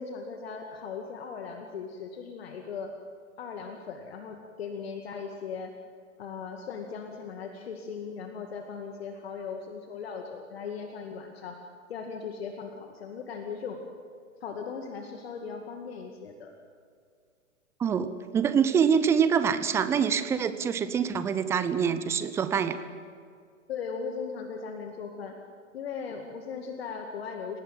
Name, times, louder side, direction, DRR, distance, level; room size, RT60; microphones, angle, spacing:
voice 1, 0.0-2.9 3.4-5.8 6.2-11.6 11.9-13.8 14.4-16.5 23.7-25.4 25.7-27.6, left 5 dB, 50° left, 4 dB, 2.2 m, -38 dB
voice 2, 17.8-22.8, right 7 dB, 5° right, 12 dB, 0.5 m, -25 dB
30.0 x 18.5 x 7.7 m, 2.2 s
figure-of-eight pair, 115°, 39 cm